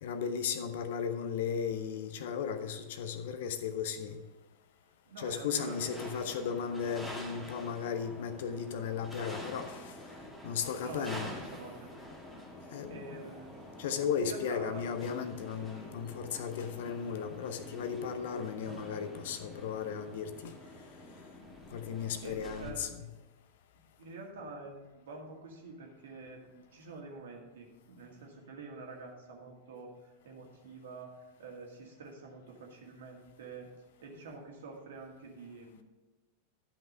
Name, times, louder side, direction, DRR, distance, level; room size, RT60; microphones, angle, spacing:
voice 1, 0.0-4.2 5.2-9.9 10.4-11.4 12.3-12.4 12.7-13.2 13.8-20.5 21.7-23.1, left 7 dB, 55° left, 10 dB, 0.8 m, -36 dB
voice 2, 5.1-5.8 6.0-6.3 10.8-11.9 12.9-13.5 14.2-14.8 22.1-23.0 24.0-33.7 34.0-35.8, right 3 dB, 60° right, 1 dB, 2.1 m, -47 dB
sound 1, 5.5-22.7, equal, 5° left, 1.9 m, -47 dB
12.5 x 5.8 x 5.5 m, 1.2 s
figure-of-eight pair, 90°, 0 cm